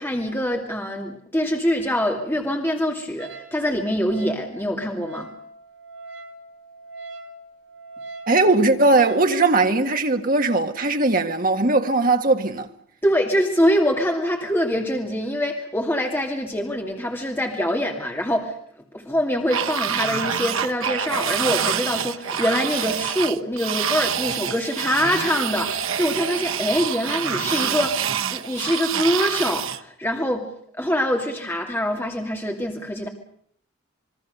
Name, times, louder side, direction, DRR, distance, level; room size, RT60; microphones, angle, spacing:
voice 1, 0.0-5.3 13.0-18.6 18.9-30.4 30.8-33.1, equal, 10° left, 2.5 m, -24 dB
Wind instrument woodwind instrument, 3.2-9.3, right 2 dB, 90° right, 5.6 m, -41 dB
voice 2, 8.3-12.7, right 3 dB, 40° right, 1.9 m, -19 dB
sound 1, 19.5-29.8, right 8 dB, 75° right, 1.0 m, -26 dB
27.0 x 22.5 x 6.7 m
head